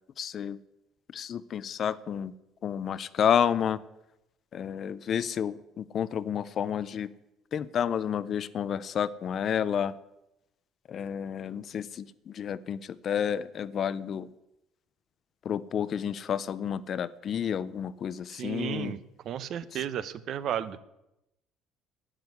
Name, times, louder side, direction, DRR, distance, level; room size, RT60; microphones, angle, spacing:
voice 1, 0.2-0.6 1.1-2.3 2.6-3.8 4.5-7.1 7.5-9.9 10.9-14.3 15.4-19.0 19.7-19.8, left 8 dB, 35° left, 17 dB, 0.5 m, -30 dB
voice 2, 18.3-19.0 19.2-20.8, right 10 dB, 45° right, 16 dB, 0.7 m, -33 dB
11.5 x 9.9 x 9.6 m, 0.89 s
cardioid pair, 170°, 0 cm